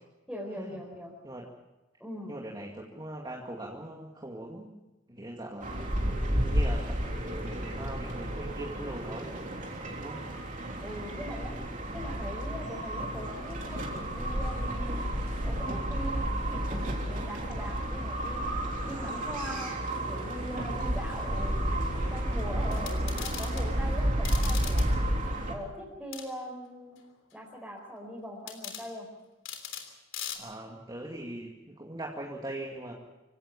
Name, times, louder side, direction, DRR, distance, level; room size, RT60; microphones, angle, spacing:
voice 1, 0.3-1.1 2.0-2.4 10.8-11.5 11.9-15.0 15.4-18.4 18.9-19.7 20.1-21.6 21.9-24.9 25.5-27.0 27.3-29.1, equal, ahead, -6 dB, 4.8 m, -41 dB
voice 2, 2.3-4.8 5.1-5.9 6.4-9.4 10.0-10.2 30.3-32.9, right 1 dB, 20° right, -1 dB, 2.3 m, -41 dB
sound 1, 5.6-25.5, right 1 dB, 45° right, 3.4 m, -31 dB
sound 2, 12.9-23.9, left 1 dB, 45° left, 7.3 m, -51 dB
sound 3, 22.7-23.7 24.3-24.9 26.1-26.3 28.5-28.9 29.5-29.9 30.1-30.4, left 9 dB, 90° left, 3.4 m, -39 dB
26.0 x 16.5 x 7.3 m, 1.1 s
head